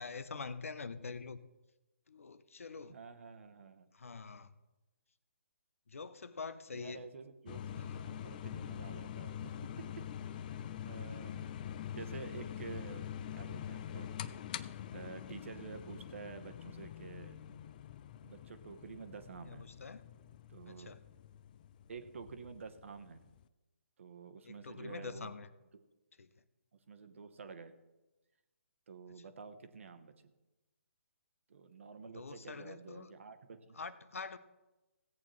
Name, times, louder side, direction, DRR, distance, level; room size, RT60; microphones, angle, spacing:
voice 1, 0.0-1.4 2.1-3.0 3.9-4.5 5.9-7.1 7.8-8.0 19.5-20.0 20.7-21.0 24.4-25.5 26.2-26.3 32.1-33.1 33.7-34.4, left 4 dB, 75° left, 0.8 m, -45 dB
voice 2, 2.9-3.9 6.7-9.9 10.5-11.5 11.9-14.1 14.9-17.4 18.2-19.7 20.5-21.0 21.9-23.2 24.0-25.3 26.9-27.7 28.9-30.1 31.5-33.8, right 5 dB, 60° right, 1.1 m, -49 dB
sound 1, 7.5-23.4, left 9 dB, 35° left, 0.4 m, -45 dB
16.5 x 8.6 x 3.2 m
figure-of-eight pair, 140°, 8 cm